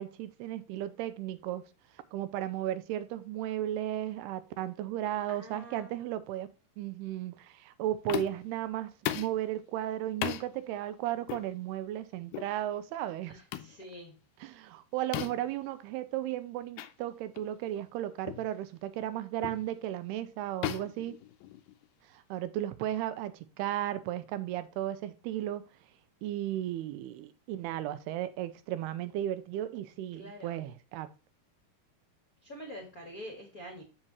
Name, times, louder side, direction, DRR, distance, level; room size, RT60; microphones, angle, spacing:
voice 1, 0.0-1.6 2.1-6.5 6.8-13.4 14.4-21.2 22.1-25.6 26.2-31.1, right 12 dB, 90° right, 2.7 m, -35 dB
voice 2, 5.3-6.0 13.2-14.3 30.1-30.6 32.4-33.8, equal, 40° left, 1.2 m, -46 dB
sound 1, 8.1-8.5 9.1-9.4 10.2-10.5 11.3-11.5 12.3-12.5 13.5-13.8 15.1-15.5 16.8-16.9 17.4-17.5 18.3-18.5 19.4-19.7 20.6-21.8, left 13 dB, 80° left, 2.5 m, -36 dB
7.6 x 7.4 x 2.9 m
omnidirectional pair, 4.7 m